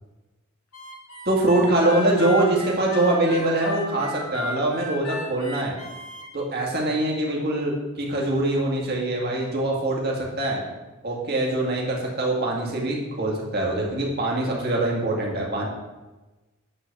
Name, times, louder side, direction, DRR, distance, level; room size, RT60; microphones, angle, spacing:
Harmonica, 0.7-6.3, left 2 dB, 85° left, 1.8 m, -35 dB
voice 1, 1.3-5.7 6.3-10.6 11.0-15.7, right 1 dB, 45° right, -2 dB, 2.2 m, -23 dB
9.7 x 4.0 x 6.9 m, 1.1 s
head